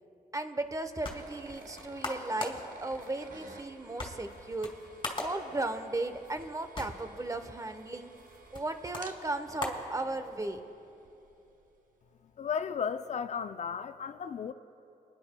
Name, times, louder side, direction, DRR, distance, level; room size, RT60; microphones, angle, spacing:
voice 1, 0.3-4.7 5.2-8.1 8.5-10.6, right 2 dB, 20° right, 9 dB, 0.8 m, -36 dB
sound 1, 0.6-10.6, left 2 dB, 35° left, 2.4 m, -42 dB
sound 2, 1.0-11.8, right 4 dB, 65° right, 0.9 m, -54 dB
voice 2, 12.4-14.5, left 7 dB, 50° left, 11 dB, 0.4 m, -34 dB
28.0 x 10.5 x 2.2 m, 2.9 s
cardioid pair, 55°, 15 cm